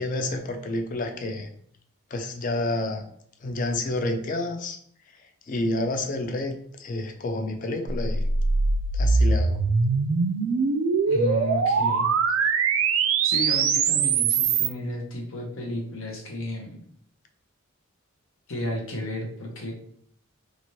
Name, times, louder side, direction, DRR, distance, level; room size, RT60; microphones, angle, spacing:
voice 1, 0.0-1.5 2.1-3.0 3.4-4.8 5.2-8.2 8.9-9.6, left 2 dB, 40° left, 6 dB, 0.3 m, -29 dB
sound 1, 7.9-14.7, right 4 dB, 70° right, 0.3 m, -22 dB
voice 2, 11.1-12.1 12.4-12.5 13.2-16.8 18.5-19.7, left 1 dB, 70° left, 0 dB, 0.7 m, -32 dB
2.7 x 2.4 x 3.0 m, 0.64 s
head